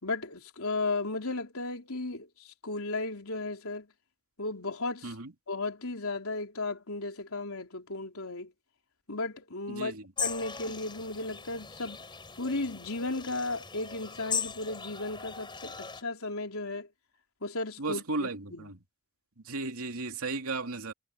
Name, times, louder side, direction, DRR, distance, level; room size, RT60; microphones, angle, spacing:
voice 1, 0.0-2.3 2.6-3.9 4.4-5.1 5.5-8.5 9.1-9.9 10.2-12.0 12.4-16.9 17.4-18.7, left 2 dB, 80° left, 3.6 m, -35 dB
voice 2, 9.7-10.0 17.8-18.8 19.4-20.9, right 3 dB, 85° right, 2.7 m, -35 dB
sound 1, 10.2-16.0, left 6 dB, 20° left, 5.1 m, -38 dB
head